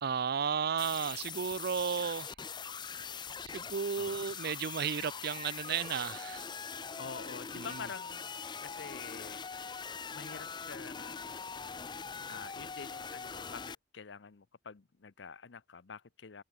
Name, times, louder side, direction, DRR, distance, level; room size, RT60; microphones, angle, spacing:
voice 1, 0.0-2.3 3.5-6.5 7.5-7.8, right 7 dB, 60° right, 0.5 m, -34 dB
sound 1, 0.8-13.7, left 6 dB, 25° left, 0.6 m, -42 dB
voice 2, 7.0-9.4 10.1-11.2 12.3-16.4, left 5 dB, 90° left, 0.8 m, -47 dB
head